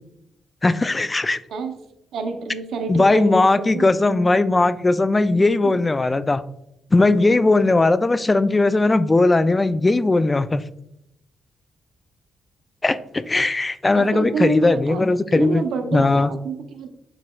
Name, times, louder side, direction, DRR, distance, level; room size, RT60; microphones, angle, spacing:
voice 1, 0.6-1.4 2.9-6.4 6.9-10.6 12.8-15.6 15.9-16.3, left 2 dB, 25° left, 14 dB, 0.3 m, -18 dB
voice 2, 2.1-3.9 5.6-5.7 13.9-15.0 15.3-16.9, right 4 dB, 75° right, 6 dB, 0.6 m, -28 dB
7.3 x 3.0 x 2.3 m, 0.79 s
supercardioid pair, 60°, 0 cm